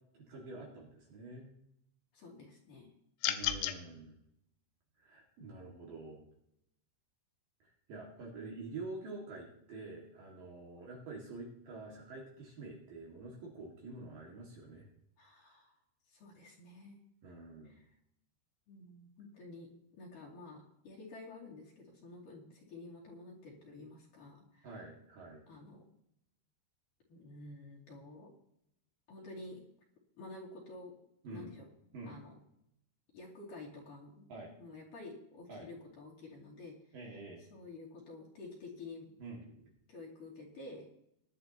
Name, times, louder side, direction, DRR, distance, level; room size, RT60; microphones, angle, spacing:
voice 1, 0.1-1.5 3.3-4.2 5.0-6.2 7.9-14.9 17.2-17.8 24.6-25.4 31.2-31.5 31.9-32.1 34.3-34.5 35.5-35.7 36.9-37.4 39.2-39.7, right 3 dB, 55° right, -2 dB, 3.3 m, -47 dB
voice 2, 2.1-2.9 15.2-15.8 16.1-17.0 17.6-18.0 18.7-24.8 25.5-25.8 27.1-28.3 29.1-29.6 30.2-30.9 31.3-31.7 32.1-32.4 33.1-34.3 34.6-36.7 37.4-39.1 39.9-40.9, left 2 dB, 50° left, -2 dB, 3.8 m, -50 dB
sound 1, 3.2-3.8, left 12 dB, 85° left, 3.1 m, -32 dB
20.5 x 11.0 x 2.9 m, 0.77 s
omnidirectional pair, 5.4 m